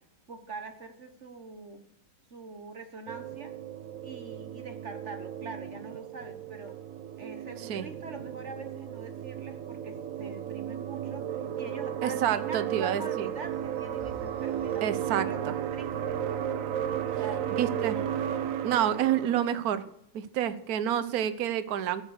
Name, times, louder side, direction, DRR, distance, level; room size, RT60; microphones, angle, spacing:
voice 1, 0.3-1.8 2.3-3.5 4.0-6.8 7.2-14.9 15.2-16.2 17.0-17.7, right 3 dB, 40° right, 7 dB, 1.4 m, -44 dB
sound 1, 3.1-19.6, right 10 dB, 70° right, 0.7 m, -34 dB
voice 2, 12.0-13.3 14.8-15.3 17.6-18.0 18.6-19.8 20.1-22.0, right 10 dB, 55° right, 13 dB, 1.2 m, -28 dB
sound 2, 13.2-18.5, equal, 35° left, 3.9 m, -52 dB
15.0 x 11.0 x 6.5 m, 0.73 s
omnidirectional pair, 2.2 m